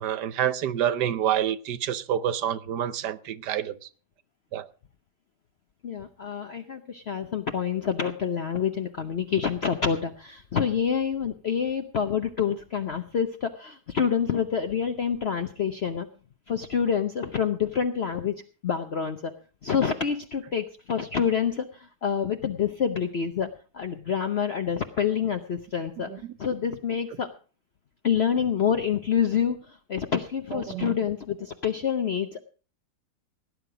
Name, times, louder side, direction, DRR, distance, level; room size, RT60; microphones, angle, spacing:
voice 1, 0.0-3.8 4.5-4.7 26.1-26.2 30.5-31.0, right 10 dB, 85° right, 1.4 m, -27 dB
voice 2, 5.8-16.1 16.5-18.3 18.6-19.3 19.6-23.5 23.7-27.3 28.0-32.4, left 7 dB, 50° left, 0.9 m, -27 dB
17.5 x 9.5 x 4.9 m
omnidirectional pair, 1.8 m